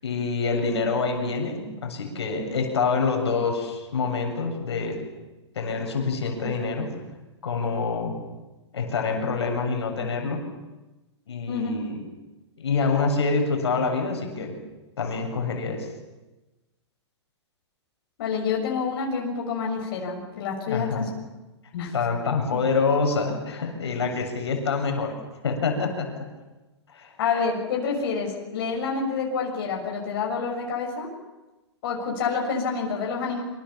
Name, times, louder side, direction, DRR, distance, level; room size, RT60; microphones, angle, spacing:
voice 1, 0.0-5.0 5.6-7.0 7.4-8.2 8.7-10.4 11.3-12.0 12.6-14.6 15.0-15.9 20.7-21.1 21.9-25.1 25.4-26.1 26.9-27.1, left 4 dB, 65° left, 3 dB, 7.2 m, -26 dB
voice 2, 18.2-21.1 21.7-21.9 25.8-25.9 27.2-31.1 31.8-33.4, left 5 dB, 50° left, 0 dB, 6.7 m, -28 dB
28.0 x 26.5 x 7.2 m, 1.1 s
figure-of-eight pair, 115°, 15 cm